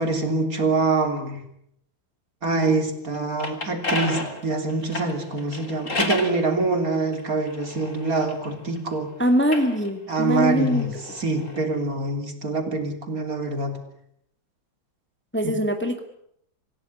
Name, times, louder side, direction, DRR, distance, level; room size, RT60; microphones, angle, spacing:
voice 1, 0.0-1.4 2.4-9.1 10.1-10.9 11.1-13.8 15.4-15.5, right 3 dB, 45° right, 6 dB, 3.7 m, -25 dB
sound 1, 3.1-6.4 7.1-8.8 9.3-11.7, left 2 dB, 40° left, 3.4 m, -32 dB
voice 2, 9.2-11.0 15.3-16.0, equal, 5° left, 6 dB, 1.9 m, -22 dB
27.0 x 16.5 x 10.0 m, 0.72 s
omnidirectional pair, 2.1 m